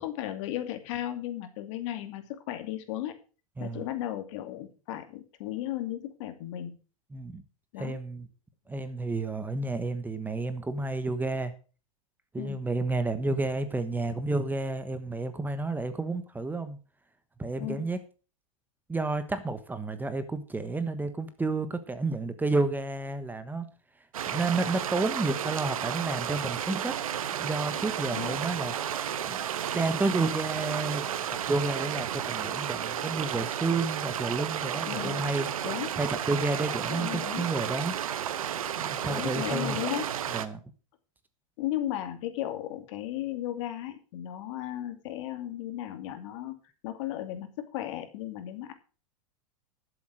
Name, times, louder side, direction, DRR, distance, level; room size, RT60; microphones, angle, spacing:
voice 1, 0.0-3.1 3.6-6.8 7.7-8.0 12.4-12.6 17.6-17.8 28.1-28.3 34.9-35.2 35.6-35.9 36.9-37.5 39.1-40.1 41.6-46.5 46.8-48.7, left 13 dB, 65° left, 8 dB, 2.6 m, -35 dB
voice 2, 7.1-7.4 7.8-8.3 8.7-11.5 12.3-16.8 17.4-18.0 18.9-23.7 24.3-26.9 27.3-28.7 29.3-29.4 29.7-35.7 36.0-37.9 38.8-39.8 40.3-40.6, right 3 dB, 10° right, 11 dB, 1.2 m, -31 dB
sound 1, 24.1-40.5, right 9 dB, 90° right, 1.1 m, -32 dB
12.0 x 7.8 x 6.4 m, 0.36 s
hypercardioid pair, 115°, 18 cm